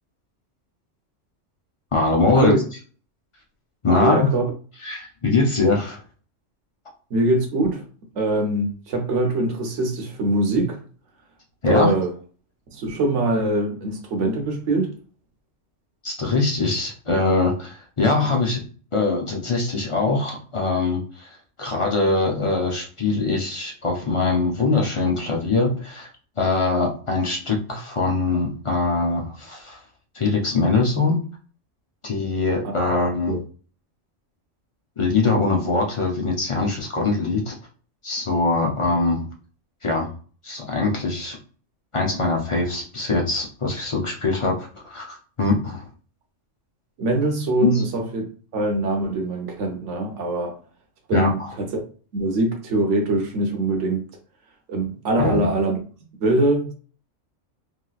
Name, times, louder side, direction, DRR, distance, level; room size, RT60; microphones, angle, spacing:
voice 1, 1.9-2.6 3.8-4.3 4.8-6.0 11.6-11.9 16.0-18.6 18.9-21.3 21.6-26.1 26.4-29.8 30.1-31.2 32.0-33.3 35.0-37.5 38.0-39.2 39.8-40.1 40.4-41.4 41.9-45.9 47.6-47.8 51.1-51.5 55.2-55.5, left 3 dB, 35° left, 0.5 m, -22 dB
voice 2, 3.9-4.5 7.1-7.8 8.1-10.8 11.6-12.1 12.7-14.9 32.6-33.4 47.0-48.2 48.5-50.6 51.1-51.8 52.1-54.1 54.7-55.8 56.2-56.7, right 2 dB, 70° right, 1.1 m, -23 dB
3.2 x 2.8 x 2.3 m
omnidirectional pair, 1.3 m